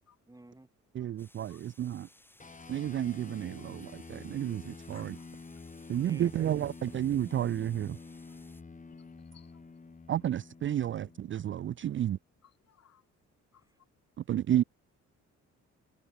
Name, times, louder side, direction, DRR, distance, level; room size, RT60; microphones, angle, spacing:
voice 1, 0.3-0.7 5.9-6.5 13.6-13.8 14.5-14.7, right 2 dB, 10° right, 6.6 m, -53 dB
voice 2, 1.0-2.1 2.7-5.2 5.9-8.0 10.1-12.2 14.2-14.6, right 11 dB, 40° right, 0.4 m, -31 dB
sound 1, 1.2-8.6, left 1 dB, 5° left, 3.4 m, -61 dB
sound 2, 2.4-12.1, left 4 dB, 25° left, 3.3 m, -49 dB
voice 3, 4.9-5.3 9.0-9.6 12.4-13.0 13.5-13.7, left 9 dB, 60° left, 5.1 m, -61 dB
cardioid pair, 90°, 30 cm